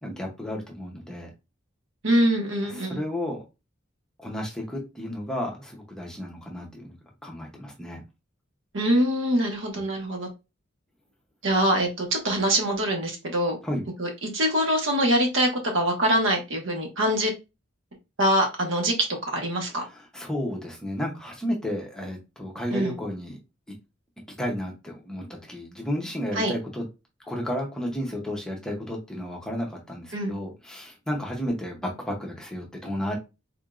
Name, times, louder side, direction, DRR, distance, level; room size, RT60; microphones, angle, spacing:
voice 1, 0.0-1.3 2.7-3.4 4.2-6.9 7.2-8.0 9.7-9.8 13.6-13.9 19.9-23.4 24.4-26.8 27.2-33.1, equal, 5° left, 0.7 m, -32 dB
voice 2, 2.0-3.0 8.7-10.3 11.4-13.6 14.0-17.3 18.2-19.9 22.7-22.9 26.3-26.5 30.1-30.3, right 1 dB, 70° right, 1.2 m, -24 dB
3.7 x 3.5 x 2.4 m
head